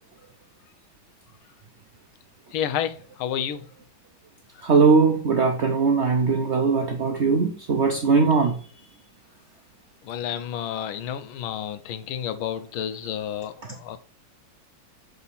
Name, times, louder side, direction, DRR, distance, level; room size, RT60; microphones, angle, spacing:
voice 1, 2.5-3.6 10.0-14.0, left 9 dB, 90° left, 1.5 m, -30 dB
voice 2, 4.6-8.5 13.0-13.1, right 4 dB, 65° right, 0.7 m, -20 dB
7.1 x 4.0 x 4.1 m
omnidirectional pair, 2.2 m